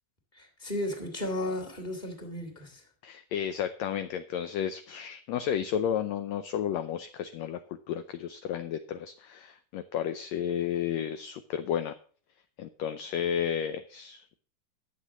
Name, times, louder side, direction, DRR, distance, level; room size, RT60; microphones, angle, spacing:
voice 1, 0.3-2.8, left 1 dB, 15° left, 4 dB, 2.9 m, -34 dB
voice 2, 3.0-11.9 12.6-14.4, left 9 dB, 75° left, 10 dB, 1.7 m, -32 dB
11.5 x 7.4 x 6.2 m, 0.43 s
omnidirectional pair, 3.5 m